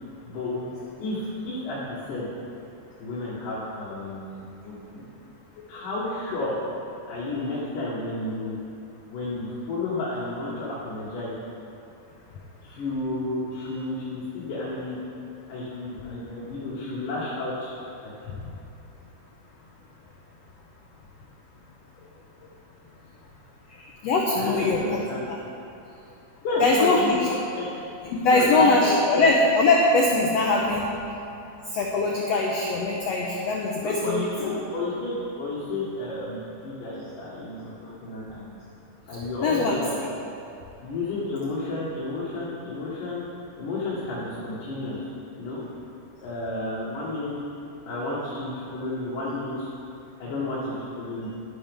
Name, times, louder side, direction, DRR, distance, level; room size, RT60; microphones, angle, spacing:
voice 1, 0.2-0.7 1.0-2.3 3.0-5.0 5.7-6.6 7.1-8.6 9.1-11.3 12.6-15.0 15.5-17.7 18.0-18.1 24.4-25.2 26.4-27.7 28.0-29.2 33.8-38.6 39.1-40.0 40.8-43.3 43.6-45.0 45.4-45.6 46.2-47.3 47.9-49.7 50.2-51.3, left 2 dB, 70° left, -8 dB, 3.0 m, -31 dB
voice 2, 24.0-24.8 25.3-25.4 26.6-27.2 28.1-31.0 31.7-34.3 39.4-39.8, left 3 dB, 90° left, -1 dB, 1.4 m, -21 dB
11.0 x 10.5 x 3.5 m, 2.7 s
omnidirectional pair, 4.0 m